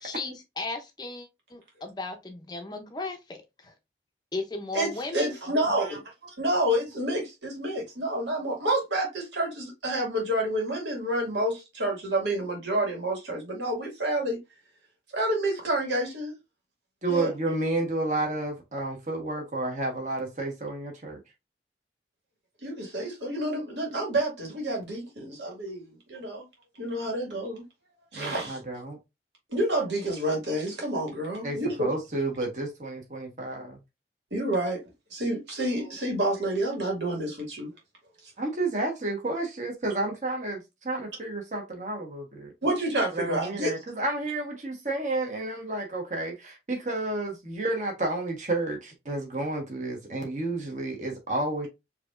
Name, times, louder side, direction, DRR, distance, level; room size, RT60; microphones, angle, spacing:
voice 1, 0.0-3.7 4.3-5.4, left 3 dB, 25° left, 0.5 m, -36 dB
voice 2, 4.7-6.0 6.4-14.4 15.1-16.4 17.1-17.3 22.6-26.4 26.8-27.6 28.1-28.6 29.5-31.9 34.3-34.8 35.1-37.7 42.6-43.7, right 1 dB, 85° right, 2.1 m, -29 dB
voice 3, 17.0-21.2 28.1-29.0 31.4-33.8 38.4-42.5 43.1-51.7, right 2 dB, 40° right, 1.2 m, -31 dB
4.8 x 2.9 x 2.4 m
head